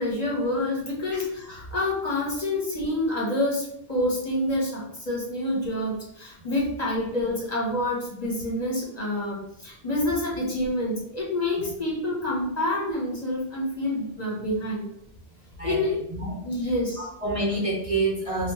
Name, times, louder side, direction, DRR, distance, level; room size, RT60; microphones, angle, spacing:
voice 1, 0.0-14.9 15.6-16.0 16.4-17.1, left 1 dB, 40° left, -4 dB, 1.2 m, -27 dB
voice 2, 16.1-18.5, right 2 dB, 35° right, -3 dB, 0.8 m, -28 dB
5.1 x 2.3 x 3.0 m, 0.73 s
omnidirectional pair, 1.1 m